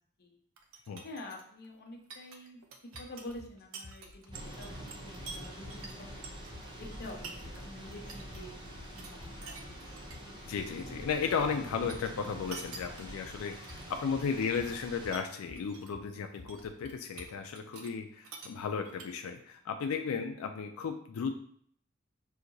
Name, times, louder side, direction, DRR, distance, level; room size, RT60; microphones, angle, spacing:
sound 1, 0.6-7.6 7.9-8.4 8.7-10.2 10.4-11.6 11.9-14.0 14.3-14.8 15.1-16.0 16.2-17.9 18.2-19.4, right 4 dB, 85° right, 0.6 m, -49 dB
voice 1, 1.0-6.3 6.8-9.6 10.2-10.5, left 1 dB, 50° left, 2 dB, 0.7 m, -48 dB
sound 2, 2.9-17.2, left 2 dB, 65° left, 1.1 m, -52 dB
Thunder / Rain, 4.3-15.2, right 1 dB, 20° right, 0.6 m, -46 dB
voice 2, 10.5-21.3, left 6 dB, 90° left, 5 dB, 0.4 m, -35 dB
5.8 x 2.8 x 2.6 m, 0.62 s
head